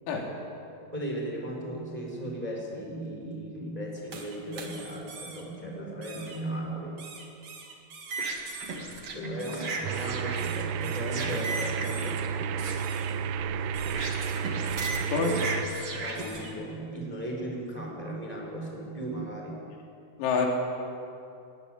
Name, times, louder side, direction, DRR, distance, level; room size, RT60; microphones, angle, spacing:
voice 1, 0.9-7.0 9.1-12.2 15.9-19.6, right 1 dB, 10° right, 0 dB, 3.9 m, -36 dB
sound 1, 4.1-5.4 6.0-6.4 7.0-16.5, right 3 dB, 45° right, 2.0 m, -37 dB
voice 2, 5.7-6.0 9.1-9.4 15.1-15.4 20.2-20.5, left 4 dB, 90° left, 0 dB, 5.9 m, -28 dB
sound 2, 9.8-15.7, right 7 dB, 85° right, 3.5 m, -31 dB
20.5 x 20.0 x 9.3 m, 2.6 s
omnidirectional pair, 6.0 m